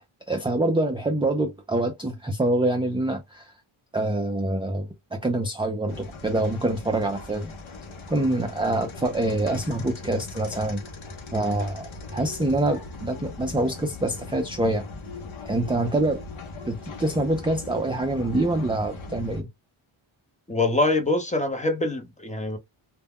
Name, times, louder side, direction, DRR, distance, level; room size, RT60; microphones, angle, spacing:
voice 1, 0.3-3.5 3.9-7.5 8.1-10.8 11.3-14.9 15.5-16.2 16.7-19.5, right 2 dB, 10° right, 0.3 m, -25 dB
sound 1, 5.9-19.4, left 3 dB, 70° left, 0.8 m, -39 dB
voice 2, 20.5-22.6, left 2 dB, 15° left, 0.6 m, -24 dB
2.2 x 2.1 x 3.4 m
wide cardioid pair, 90°, 50 cm